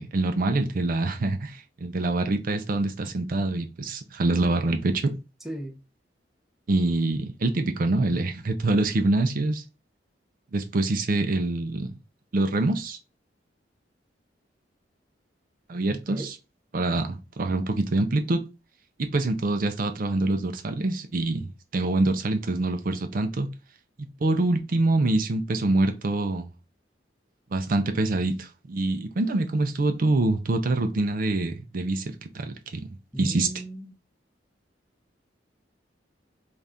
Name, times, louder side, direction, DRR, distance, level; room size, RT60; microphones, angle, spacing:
voice 1, 0.0-5.1 6.7-9.6 10.5-11.9 12.3-13.0 15.7-16.4 16.7-18.4 19.1-23.5 24.2-26.5 27.5-32.9 33.2-33.5, right 2 dB, 50° right, 0.5 m, -25 dB
voice 2, 5.4-5.8 15.9-16.3 33.1-33.9, right 1 dB, ahead, 0.7 m, -35 dB
4.0 x 2.4 x 3.4 m
head